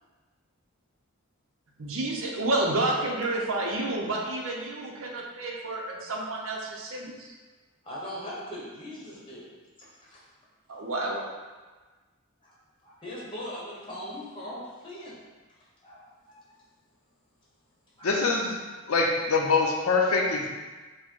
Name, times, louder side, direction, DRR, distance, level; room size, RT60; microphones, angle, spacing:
voice 1, 1.8-7.3 10.7-11.2, right 2 dB, 70° right, 0 dB, 0.7 m, -30 dB
voice 2, 7.8-9.5 9.8-10.2 12.4-12.5 12.8-15.2 15.8-16.4 18.0-18.1, equal, 25° left, -6 dB, 1.0 m, -40 dB
voice 3, 18.0-18.5 18.9-20.5, left 4 dB, 80° left, 0 dB, 0.6 m, -24 dB
4.6 x 2.1 x 4.4 m, 1.3 s
head